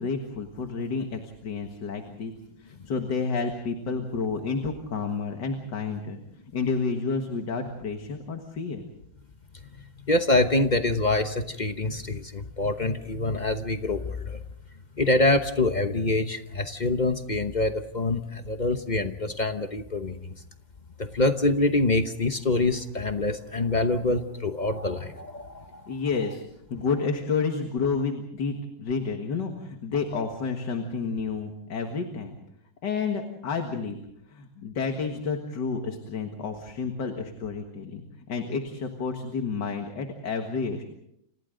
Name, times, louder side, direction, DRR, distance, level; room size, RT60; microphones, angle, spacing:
voice 1, 0.0-2.3 2.6-6.2 6.5-8.8 25.9-26.4 26.7-32.4 32.8-34.0 34.3-38.0 38.3-40.9, left 5 dB, 65° left, 4 dB, 2.3 m, -30 dB
voice 2, 10.1-14.4 15.0-20.3 21.0-25.8, left 2 dB, 35° left, 8 dB, 0.8 m, -25 dB
30.0 x 27.0 x 3.9 m, 0.78 s
omnidirectional pair, 2.1 m